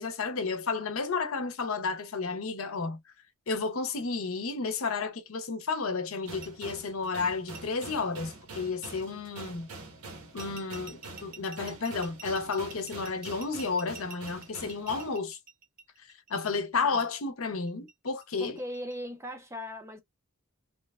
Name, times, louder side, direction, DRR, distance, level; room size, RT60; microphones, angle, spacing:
voice 1, 0.0-3.0 3.5-9.7 10.3-15.4 16.3-18.6, left 4 dB, 65° left, 0.7 m, -32 dB
sound 1, 6.2-15.2, right 3 dB, 80° right, 1.0 m, -45 dB
sound 2, 6.4-6.5 7.5-7.6 8.8-8.9 10.4-16.5 17.7-18.9, right 4 dB, 40° right, 0.8 m, -48 dB
voice 2, 18.4-20.0, equal, 10° right, 0.5 m, -39 dB
3.1 x 2.0 x 2.3 m
head